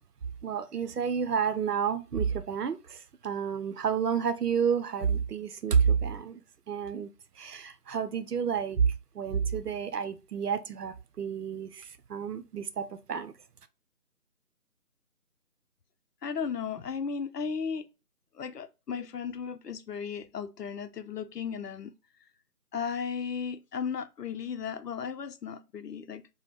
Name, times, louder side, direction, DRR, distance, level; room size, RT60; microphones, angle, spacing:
voice 1, 0.4-6.4 6.7-7.1 7.4-13.3, right 7 dB, 80° right, 0.6 m, -30 dB
voice 2, 16.2-17.9 18.3-21.9 22.7-26.3, left 6 dB, 85° left, 0.6 m, -35 dB
5.0 x 2.1 x 3.0 m
figure-of-eight pair, 165°, 47 cm